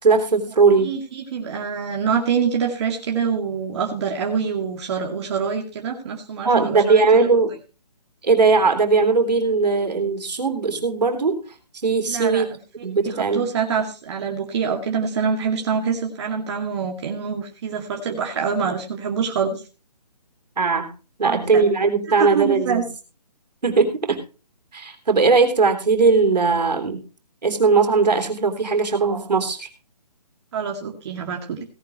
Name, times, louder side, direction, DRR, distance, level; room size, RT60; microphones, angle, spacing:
voice 1, 0.0-0.9 6.4-7.5 8.2-11.4 11.8-12.5 12.8-13.5 20.6-20.9 21.2-22.8 23.6-24.2 24.7-27.0 27.4-29.7, right 4 dB, 80° right, 5 dB, 3.5 m, -19 dB
voice 2, 0.8-7.0 12.1-12.4 13.2-19.6 21.2-21.7 22.2-22.8 30.5-31.6, right 6 dB, 40° right, 1 dB, 2.2 m, -25 dB
17.5 x 11.0 x 3.0 m, 0.33 s
hypercardioid pair, 150°, 21 cm